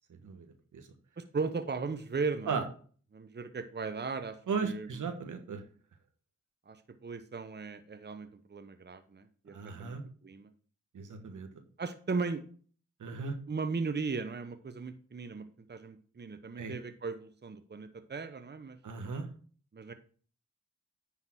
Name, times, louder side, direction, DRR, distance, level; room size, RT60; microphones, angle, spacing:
voice 1, 0.1-0.9 2.5-2.6 4.5-5.6 9.5-10.0 10.9-11.5 13.0-13.3 16.6-16.7 18.8-19.3, right 5 dB, 80° right, 6 dB, 1.4 m, -36 dB
voice 2, 1.2-2.6 3.1-5.0 6.7-10.5 11.8-12.4 13.5-18.8 19.7-19.9, right 4 dB, 35° right, 9 dB, 0.9 m, -37 dB
10.0 x 3.8 x 6.2 m, 0.44 s
cardioid pair, 55°, 31 cm